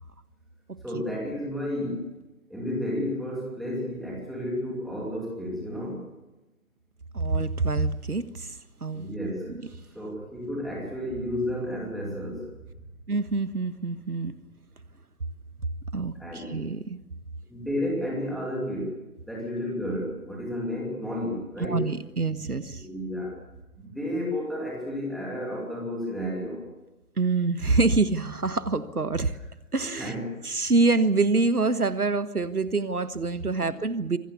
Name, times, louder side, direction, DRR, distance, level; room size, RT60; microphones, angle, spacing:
voice 1, 0.8-2.1 2.5-6.0 8.9-9.6 9.9-12.5 16.2-16.5 17.5-21.9 22.7-23.4 23.8-26.7 29.9-30.3, left 1 dB, ahead, -3 dB, 2.6 m, -32 dB
voice 2, 7.1-8.5 8.8-9.1 13.1-14.3 15.9-17.0 21.6-22.8 27.2-29.4 29.7-30.1 30.4-34.2, right 3 dB, 75° right, 13 dB, 1.5 m, -26 dB
25.5 x 18.5 x 7.1 m, 1.0 s
figure-of-eight pair, 150°, 45 cm